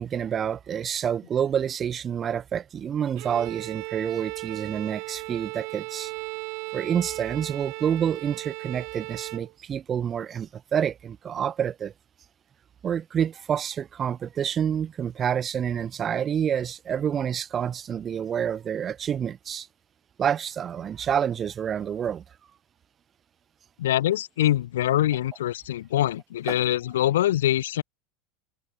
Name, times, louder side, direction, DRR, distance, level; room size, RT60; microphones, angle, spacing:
voice 1, 0.0-6.1 6.7-11.9 12.8-19.7 20.2-22.2 26.5-26.6, right 8 dB, 35° right, 0.8 m, -28 dB
Bowed string instrument, 3.2-9.5, right 32 dB, 60° right, 1.1 m, -36 dB
voice 2, 23.8-27.8, left 13 dB, 75° left, 0.4 m, -24 dB
open air
hypercardioid pair, 85°, 0 cm